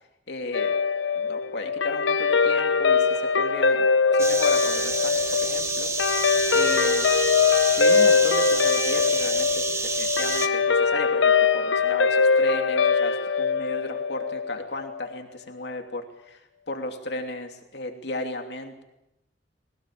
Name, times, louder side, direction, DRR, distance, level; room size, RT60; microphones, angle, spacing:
voice 1, 0.3-0.7 1.2-5.9 6.5-7.1 7.6-18.8, left 2 dB, 65° left, 4 dB, 2.9 m, -35 dB
Guitar, 0.5-15.1, left 5 dB, 90° left, 1.0 m, -22 dB
sound 1, 4.2-10.5, right 4 dB, 15° right, 1.1 m, -29 dB
21.5 x 19.0 x 8.6 m, 0.91 s
head